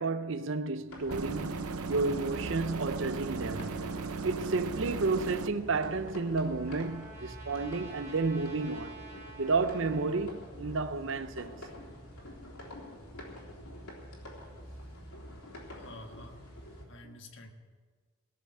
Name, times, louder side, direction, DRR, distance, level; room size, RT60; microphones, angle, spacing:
voice 1, 0.0-3.8 4.2-9.0 9.4-11.6 17.0-17.1, right 3 dB, 60° right, 0.6 m, -31 dB
sound 1, 0.9-16.8, equal, 85° left, 3.4 m, -46 dB
sound 2, 1.1-5.5, right 4 dB, 90° right, 0.8 m, -37 dB
Trumpet, 6.0-10.3, right 3 dB, 15° right, 3.1 m, -50 dB
voice 2, 15.7-16.5 16.9-17.5, left 2 dB, 55° left, 1.5 m, -49 dB
18.5 x 6.8 x 9.5 m
head